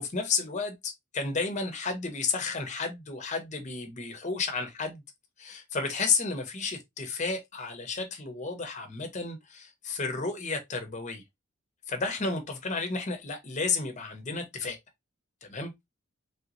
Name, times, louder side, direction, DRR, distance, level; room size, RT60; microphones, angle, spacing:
voice 1, 0.0-5.0 5.4-11.2 11.9-14.8 15.4-15.7, left 4 dB, 35° left, 0.8 m, -32 dB
3.4 x 3.0 x 2.5 m
head